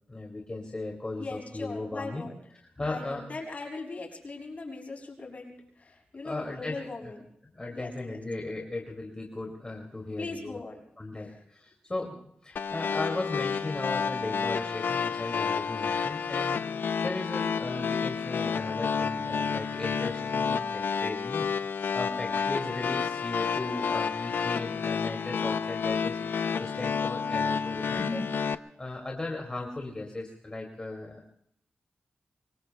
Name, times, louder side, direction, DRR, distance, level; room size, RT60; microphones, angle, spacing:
voice 1, 0.1-2.3 2.8-3.3 6.2-6.7 7.0-7.1 7.5-10.6 11.0-12.2 12.4-31.3, left 2 dB, 25° left, 0 dB, 2.3 m, -37 dB
voice 2, 1.2-2.3 2.8-7.3 7.7-8.2 10.2-10.8 11.1-11.4, left 3 dB, 45° left, 0 dB, 6.4 m, -40 dB
sound 1, 12.6-28.6, left 6 dB, 85° left, 0.6 m, -30 dB
26.0 x 24.5 x 2.3 m, 0.71 s
wide cardioid pair, 85°, 3 cm